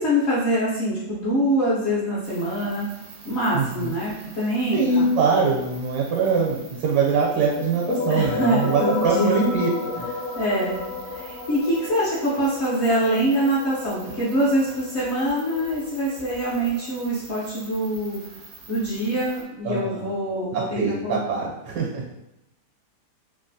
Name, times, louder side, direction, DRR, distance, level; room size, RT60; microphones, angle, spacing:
voice 1, 0.0-2.9 3.2-5.2 8.1-9.3 10.3-18.2 18.7-21.2, equal, 60° left, -8 dB, 0.7 m, -24 dB
sound 1, 2.2-19.4, right 4 dB, 70° right, 0.6 m, -46 dB
voice 2, 3.5-3.9 4.7-10.1 19.6-20.1 20.5-22.0, right 4 dB, 85° right, -2 dB, 1.3 m, -23 dB
sound 2, 7.6-17.0, left 3 dB, 80° left, 1.2 m, -32 dB
3.1 x 2.4 x 2.6 m, 0.90 s
omnidirectional pair, 1.8 m